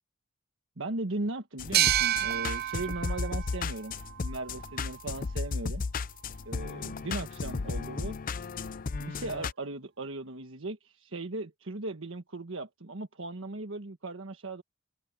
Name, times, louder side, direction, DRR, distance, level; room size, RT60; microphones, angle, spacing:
voice 1, 0.8-5.8 6.4-8.1 9.0-14.6, right 2 dB, 75° right, 1.4 m, -37 dB
sound 1, 1.6-9.5, left 4 dB, 45° left, 0.5 m, -35 dB
sound 2, 1.7-5.1, right 12 dB, 50° right, 0.6 m, -30 dB
head